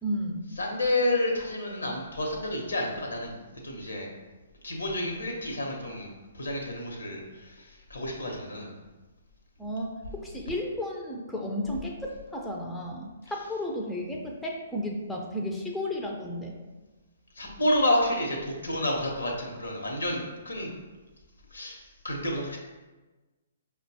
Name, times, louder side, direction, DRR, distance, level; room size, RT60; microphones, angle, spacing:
voice 1, 0.0-0.4 9.6-16.5, left 1 dB, 5° left, -1 dB, 0.5 m, -33 dB
voice 2, 0.6-4.1 4.6-6.1 6.3-8.7 17.4-20.7 21.5-21.8 22.0-22.6, left 1 dB, 75° left, 0 dB, 0.9 m, -30 dB
5.3 x 2.2 x 2.7 m, 1.2 s
figure-of-eight pair, 125°, 0 cm